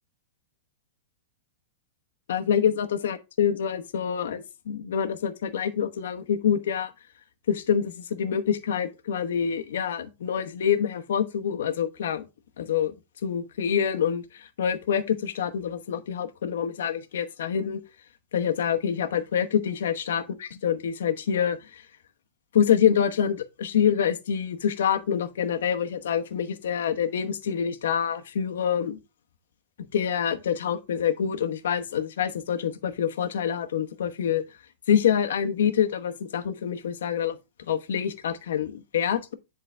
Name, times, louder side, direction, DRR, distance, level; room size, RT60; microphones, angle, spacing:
voice 1, 2.3-6.9 7.5-12.2 12.6-12.9 13.2-17.8 18.3-21.8 22.5-29.0 29.9-34.4 34.9-37.4 37.7-39.3, left 8 dB, 85° left, 1.0 m, -26 dB
10.5 x 3.8 x 3.3 m
supercardioid pair, 175°, 0 cm